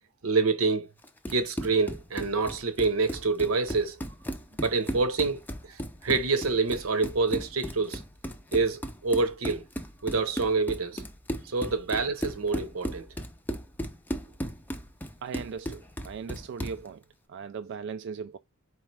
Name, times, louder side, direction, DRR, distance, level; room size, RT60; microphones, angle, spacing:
voice 1, 0.2-0.9 1.3-4.0 4.6-8.0 8.5-9.6 10.0-11.0 11.4-13.1, right 4 dB, 85° right, 0.9 m, -27 dB
Run, 1.0-16.9, equal, 10° left, 0.5 m, -36 dB
voice 2, 15.2-17.0 17.3-18.4, right 6 dB, 60° right, 0.3 m, -38 dB
4.3 x 3.3 x 3.3 m
head